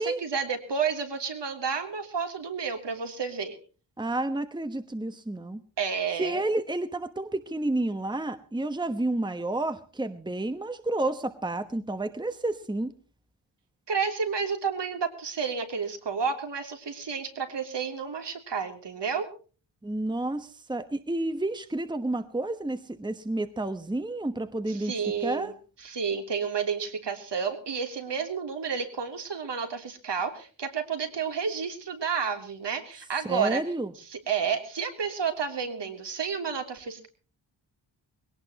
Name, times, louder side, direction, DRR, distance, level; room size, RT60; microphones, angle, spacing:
voice 1, 0.0-3.6 5.8-6.4 13.9-19.3 24.6-25.5 25.8-33.6 34.1-37.1, right 6 dB, 65° right, 5 dB, 3.3 m, -31 dB
voice 2, 4.0-5.6 6.2-12.9 19.8-24.9 25.2-25.5 33.3-33.9, right 2 dB, 10° right, 10 dB, 1.2 m, -30 dB
21.5 x 18.0 x 3.0 m, 0.37 s
wide cardioid pair, 135°, 45 cm